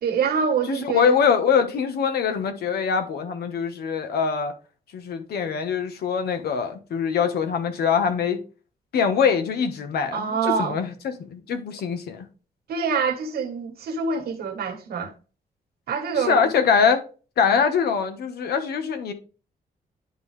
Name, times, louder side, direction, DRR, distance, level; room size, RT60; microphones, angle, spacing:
voice 1, 0.0-1.2 10.1-10.8 12.7-15.1 15.9-16.5, right 5 dB, 80° right, 1.4 m, -25 dB
voice 2, 0.7-4.5 4.9-8.4 8.9-12.3 16.3-17.0 17.4-19.1, left 6 dB, 85° left, 1.3 m, -23 dB
10.5 x 3.8 x 3.3 m
wide cardioid pair, 170°, 16 cm